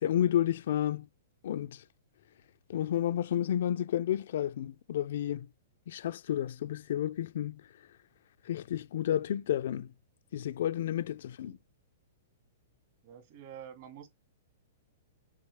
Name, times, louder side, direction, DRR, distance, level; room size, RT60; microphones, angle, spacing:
voice 1, 0.0-1.1 1.4-1.8 2.7-5.5 5.9-7.6 8.4-9.9 10.3-11.6, left 11 dB, 65° left, 0.3 m, -31 dB
voice 2, 13.0-14.1, right 9 dB, 50° right, 2.2 m, -48 dB
7.3 x 4.5 x 3.4 m
hypercardioid pair, 145°, 0 cm